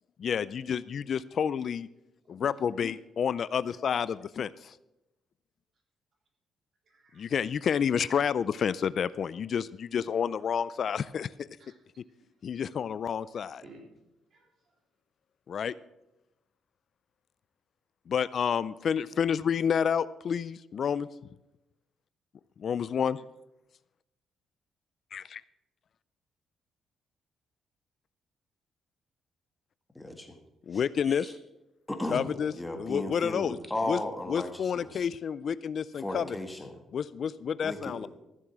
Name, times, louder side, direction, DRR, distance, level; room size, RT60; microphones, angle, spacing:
voice 1, 0.2-1.9 2.3-4.7 7.2-11.5 12.4-13.6 15.5-15.7 18.1-21.1 22.6-23.2 25.1-25.4 30.7-31.3 32.1-32.5 32.8-33.6 33.9-34.0 34.3-36.3 36.9-38.1, left 7 dB, 55° left, 18 dB, 0.3 m, -29 dB
voice 2, 2.3-2.6 6.8-7.3 7.9-8.0 10.1-10.9 11.6-12.0 13.3-13.9 14.2-14.8, right 2 dB, 55° right, 0 dB, 3.6 m, -58 dB
voice 3, 29.9-30.4 30.7-31.3 31.9-32.3 32.6-35.1 35.9-36.8 37.6-38.1, left 1 dB, 10° left, 4 dB, 1.6 m, -36 dB
14.0 x 7.4 x 6.0 m, 0.96 s
cardioid pair, 90°, 0 cm